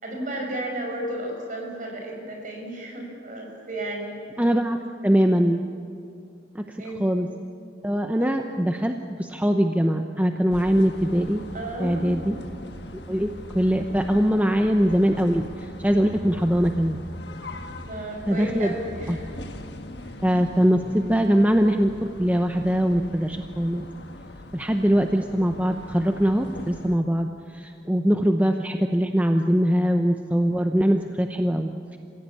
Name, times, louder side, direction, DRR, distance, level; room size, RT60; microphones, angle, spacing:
voice 1, 0.0-4.2 6.8-7.0 8.2-8.3 11.5-12.3 17.8-19.4 20.0-20.2, right 1 dB, 45° right, 1 dB, 5.8 m, -33 dB
voice 2, 4.4-5.6 6.5-7.3 7.8-11.4 11.8-12.3 13.1-17.0 18.3-18.8 19.1-19.2 20.2-23.9 24.5-32.0, equal, 10° right, 5 dB, 0.7 m, -22 dB
sound 1, 10.5-27.0, left 1 dB, 65° left, 1.5 m, -41 dB
29.0 x 16.0 x 8.4 m, 2.6 s
head